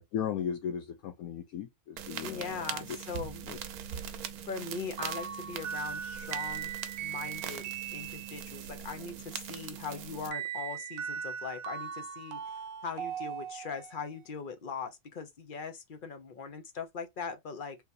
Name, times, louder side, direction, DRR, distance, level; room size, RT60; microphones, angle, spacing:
voice 1, 0.0-3.0 3.4-3.6, left 8 dB, 75° left, 1.1 m, -37 dB
sound 1, 2.0-10.3, right 9 dB, 90° right, 1.1 m, -42 dB
voice 2, 2.2-3.4 4.5-6.7 7.0-12.4 12.8-17.8, left 5 dB, 50° left, 0.6 m, -40 dB
sound 2, 5.0-8.7 10.3-14.1, right 8 dB, 70° right, 0.9 m, -39 dB
3.8 x 2.8 x 2.6 m
omnidirectional pair, 1.5 m